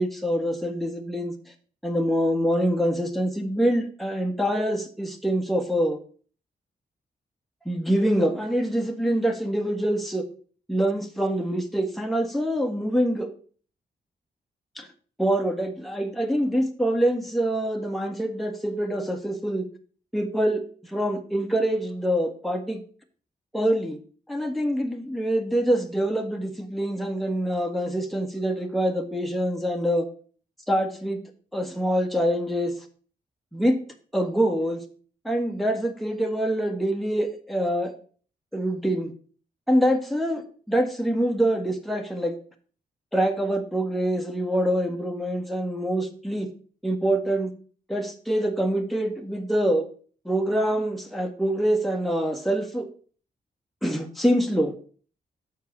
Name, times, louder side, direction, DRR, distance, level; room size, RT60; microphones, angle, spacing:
voice 1, 0.0-1.3 1.8-6.0 7.6-10.2 10.7-13.3 14.8-14.9 15.2-19.6 20.1-22.8 23.5-24.0 24.3-30.1 30.7-31.2 31.5-32.7 33.5-33.8 34.1-34.8 35.2-37.9 38.5-39.1 39.7-42.3 43.1-46.5 46.8-47.5 47.9-49.8 50.2-52.9 53.8-54.7, equal, ahead, 3 dB, 1.4 m, -25 dB
6.6 x 4.6 x 6.7 m, 0.42 s
cardioid pair, 85°, 16 cm